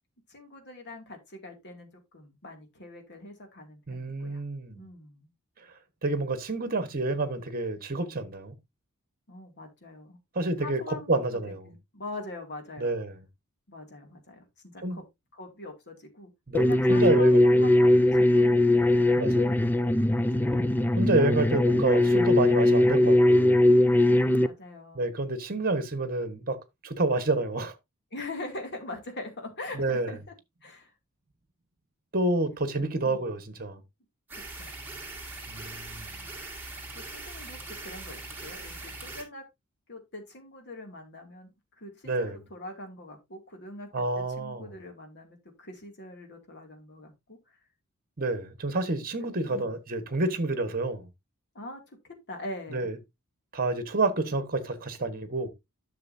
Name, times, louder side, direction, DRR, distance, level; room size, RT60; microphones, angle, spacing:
voice 1, 0.3-4.4 4.7-5.3 9.3-10.2 10.6-11.2 11.7-13.0 13.7-15.0 15.3-16.3 16.6-19.0 20.1-20.9 24.1-25.1 28.1-30.3 30.6-30.9 33.0-33.3 34.3-34.7 36.9-39.4 39.9-41.5 41.8-47.4 49.2-49.7 51.5-52.9, left 2 dB, 50° left, 2.5 m, -43 dB
voice 2, 3.9-4.9 6.0-8.5 10.3-11.6 12.8-13.2 14.8-15.0 16.5-18.0 19.2-19.6 21.0-23.7 24.9-27.7 29.7-30.1 32.1-33.8 35.5-36.1 42.0-42.4 43.9-44.7 48.2-51.1 52.7-53.0 53.5-55.5, right 2 dB, 40° right, 1.3 m, -29 dB
sound 1, 16.5-24.5, left 1 dB, 10° left, 0.4 m, -21 dB
sound 2, 34.3-39.2, right 2 dB, 10° right, 2.4 m, -41 dB
11.0 x 6.7 x 2.7 m
head